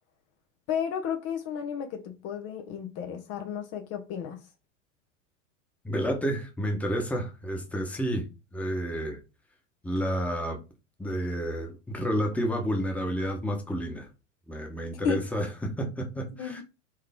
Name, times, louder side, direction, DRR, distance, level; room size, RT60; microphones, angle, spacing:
voice 1, 0.7-4.4 15.0-15.3 16.4-16.6, left 7 dB, 40° left, 0.9 m, -33 dB
voice 2, 5.8-8.3 8.5-9.2 9.8-10.6 11.0-14.1 14.5-16.6, equal, 5° left, 1.1 m, -30 dB
4.6 x 3.1 x 3.6 m
hypercardioid pair, 105°, 37 cm